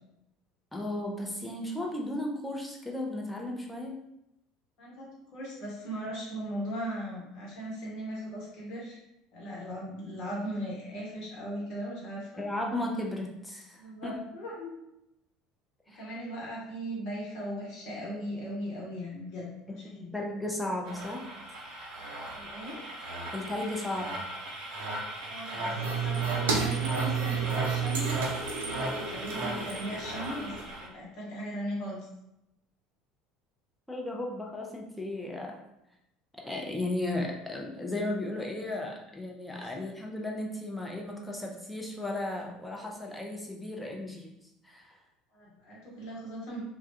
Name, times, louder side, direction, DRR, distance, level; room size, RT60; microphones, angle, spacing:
voice 1, 0.7-4.0 12.4-14.2 15.9-16.0 20.1-21.4 23.3-24.2 33.9-35.6 36.4-44.4 44.6-45.0, left 1 dB, 10° left, -1 dB, 0.6 m, -35 dB
voice 2, 4.8-9.0 9.3-12.4 13.7-14.8 16.0-20.1 22.3-22.8 25.3-28.3 28.6-32.0 39.5-39.7 45.3-46.6, equal, 55° left, -4 dB, 1.1 m, -38 dB
sound 1, 20.8-30.9, right 1 dB, 60° right, 0.9 m, -37 dB
sound 2, 25.7-30.7, right 6 dB, 75° right, 0.4 m, -32 dB
2.3 x 2.3 x 2.7 m, 0.85 s
figure-of-eight pair, 65°, 0 cm